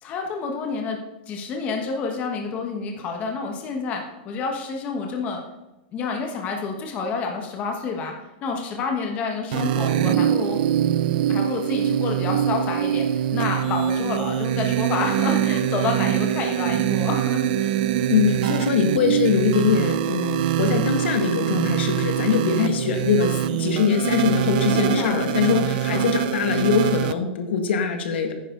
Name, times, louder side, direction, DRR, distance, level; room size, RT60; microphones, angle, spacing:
voice 1, 0.0-1.0 1.3-5.4 5.9-8.1 8.4-10.6 11.3-17.7 22.6-22.8 24.7-26.1, left 4 dB, 25° left, 2 dB, 1.3 m, -29 dB
sound 1, 9.5-27.1, right 10 dB, 55° right, 0.4 m, -23 dB
voice 2, 18.1-28.3, left 6 dB, 80° left, 5 dB, 1.7 m, -22 dB
10.0 x 9.9 x 3.9 m, 0.97 s
supercardioid pair, 170°, 6 cm